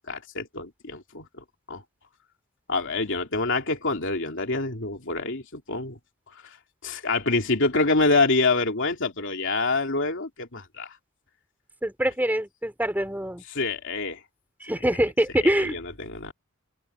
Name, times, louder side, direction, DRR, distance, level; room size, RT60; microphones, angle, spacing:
voice 1, 0.0-1.8 2.7-6.0 6.3-6.4 6.8-10.9 13.5-14.2 14.9-15.0 15.4-16.3, left 3 dB, 60° left, 3.1 m, -26 dB
voice 2, 11.8-13.4 14.6-15.8, right 1 dB, 10° right, 4.4 m, -24 dB
open air
head